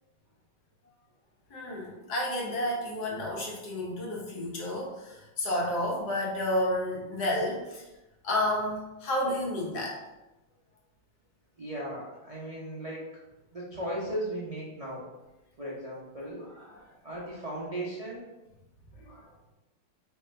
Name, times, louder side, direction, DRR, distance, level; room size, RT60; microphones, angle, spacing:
voice 1, 1.5-7.8 8.2-10.0 16.4-16.8 19.0-19.2, left 1 dB, 55° left, -3 dB, 1.5 m, -31 dB
voice 2, 11.6-13.1 13.5-15.0 15.6-16.5 17.0-18.3, right 1 dB, 60° right, -7 dB, 0.3 m, -36 dB
3.5 x 3.1 x 4.6 m, 1.0 s
omnidirectional pair, 2.1 m